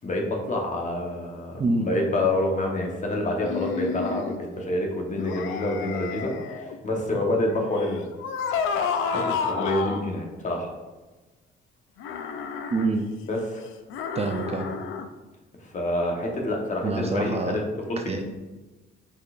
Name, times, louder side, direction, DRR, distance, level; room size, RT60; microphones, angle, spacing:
voice 1, 0.0-8.1 9.1-10.7 13.3-13.7 15.6-17.6 17.9-18.2, left 1 dB, 40° left, 1 dB, 1.1 m, -27 dB
sound 1, 3.4-4.4 5.2-6.8 7.7-10.1 12.0-12.9 13.9-15.1, left 6 dB, 85° left, 0.4 m, -30 dB
voice 2, 12.7-13.1 14.1-14.7 16.8-17.6 18.1-18.2, right 3 dB, 30° right, 4 dB, 0.5 m, -26 dB
5.2 x 4.1 x 2.5 m, 1.2 s
cardioid pair, 90°, 20 cm